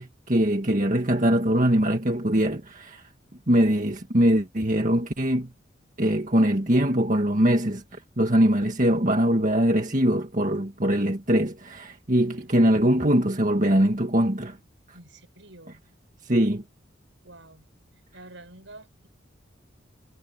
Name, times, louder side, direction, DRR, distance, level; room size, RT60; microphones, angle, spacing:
voice 1, 0.0-3.0 3.5-5.5 6.0-14.6 16.2-16.6, equal, 40° right, 1.9 m, -22 dB
voice 2, 12.1-12.6 14.9-15.8 17.2-17.7 18.1-19.1, right 2 dB, 75° right, 6.5 m, -48 dB
head